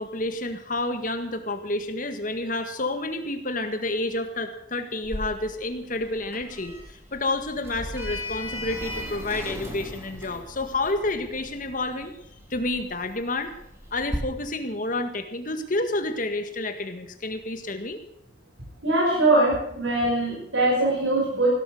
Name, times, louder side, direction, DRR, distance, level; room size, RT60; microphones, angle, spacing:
voice 1, 0.0-12.2 12.5-13.5 13.9-18.0, left 2 dB, 45° left, 7 dB, 1.8 m, -29 dB
Sliding door, 5.0-14.2, left 1 dB, 15° right, 3.0 m, -38 dB
voice 2, 18.8-21.5, right 2 dB, 85° right, -4 dB, 5.8 m, -22 dB
17.0 x 12.5 x 6.7 m, 0.78 s
head